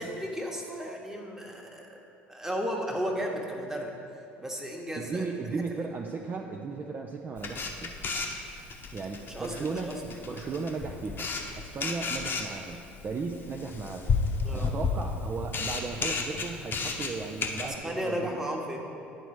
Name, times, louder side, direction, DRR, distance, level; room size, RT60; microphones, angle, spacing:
voice 1, 0.0-2.0 2.3-4.0 4.4-5.2 5.7-5.9 9.3-10.2 14.4-14.7 17.6-18.8, equal, 10° right, 0 dB, 1.2 m, -34 dB
voice 2, 5.0-8.0 8.9-9.9 10.3-11.3 11.6-14.2 14.5-18.5, right 4 dB, 30° right, 2 dB, 0.5 m, -36 dB
Camera, 7.4-17.8, left 4 dB, 35° left, 0.9 m, -32 dB
9.9 x 4.0 x 4.7 m, 2.7 s
hypercardioid pair, 65°, 6 cm